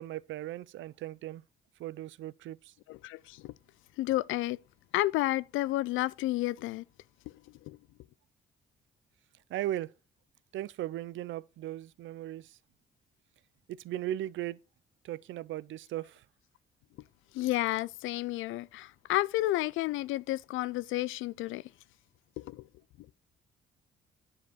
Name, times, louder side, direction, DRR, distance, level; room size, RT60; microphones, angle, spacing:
voice 1, 0.0-1.4 1.8-2.7 9.5-9.9 10.5-12.6 13.7-14.6 15.0-16.2, right 13 dB, 75° right, 0.5 m, -37 dB
voice 2, 2.9-3.5 4.0-4.6 4.9-6.8 7.7-7.8 17.3-21.6 22.4-22.6, left 16 dB, 85° left, 0.4 m, -31 dB
9.7 x 4.6 x 6.2 m
cardioid pair, 90°, 20 cm